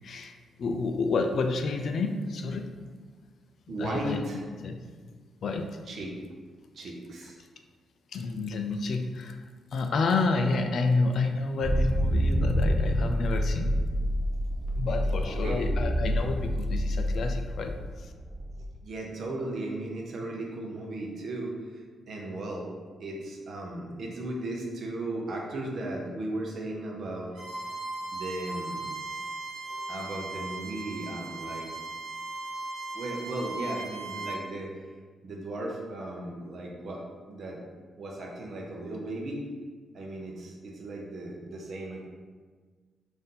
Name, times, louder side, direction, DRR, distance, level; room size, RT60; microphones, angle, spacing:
voice 1, 0.0-2.7 3.8-4.2 4.6-4.8 5.4-5.8 8.1-9.4 9.7-13.8 14.8-18.1, left 3 dB, 55° left, 5 dB, 0.3 m, -29 dB
voice 2, 3.7-4.4 5.9-6.1 6.7-7.4 15.2-15.6 18.8-22.7 23.0-27.3 28.1-28.9 29.7-31.7 32.9-34.9 35.2-37.6 38.0-39.5 39.9-42.0, right 1 dB, 50° right, -1 dB, 0.7 m, -36 dB
sound 1, 11.6-18.6, equal, 15° right, 0.5 m, -28 dB
Bowed string instrument, 27.3-34.4, right 3 dB, 85° right, 0.9 m, -37 dB
4.0 x 2.6 x 3.8 m, 1.5 s
wide cardioid pair, 155°, 0 cm